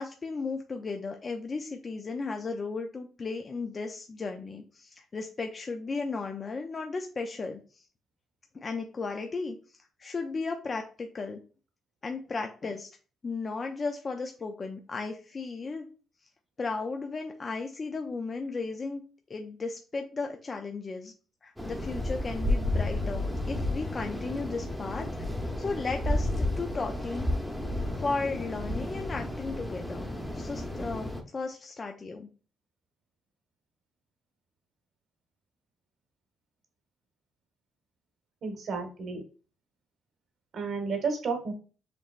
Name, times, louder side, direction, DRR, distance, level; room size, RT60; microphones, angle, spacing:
voice 1, 0.0-7.8 8.5-11.4 12.0-12.9 13.2-15.9 16.6-19.0 19.3-21.1 21.4-25.1 25.6-27.3 28.0-32.3, left 4 dB, 35° left, 4 dB, 0.5 m, -35 dB
sound 1, 21.6-31.2, left 1 dB, ahead, 0.9 m, -32 dB
voice 2, 38.4-39.2 40.5-41.5, right 4 dB, 60° right, 4 dB, 1.2 m, -32 dB
5.1 x 3.0 x 2.4 m, 0.36 s
cardioid pair, 90°, 0 cm